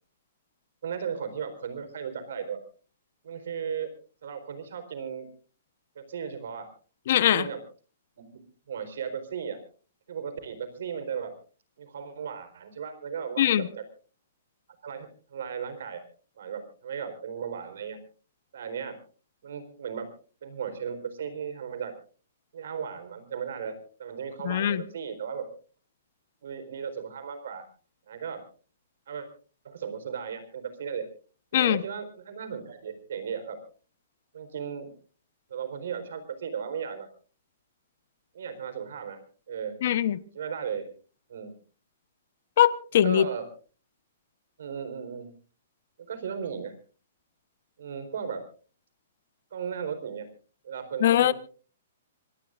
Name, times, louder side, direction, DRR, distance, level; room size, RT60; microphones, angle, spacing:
voice 1, 0.8-2.6 3.2-3.9 4.2-5.3 6.0-6.7 7.2-7.6 8.2-8.4 8.7-9.6 10.1-11.3 11.8-13.8 14.8-16.0 16.4-18.0 18.5-19.0 19.4-20.1 20.4-21.9 22.5-25.4 26.4-27.7 28.1-28.4 29.1-29.3 29.6-31.0 31.5-33.6 34.3-34.9 35.5-37.1 38.3-39.2 39.5-39.8 40.3-40.8 41.3-41.5 43.0-43.5 44.6-45.3 46.0-46.8 47.8-48.4 49.5-50.3 50.6-51.3, right 7 dB, 70° right, 9 dB, 4.2 m, -36 dB
voice 2, 7.1-7.5 13.4-13.7 24.4-24.8 31.5-31.8 39.8-40.2 42.6-43.2 51.0-51.3, left 11 dB, 50° left, 16 dB, 1.0 m, -21 dB
26.0 x 18.5 x 2.5 m, 0.38 s
hypercardioid pair, 165°, 0 cm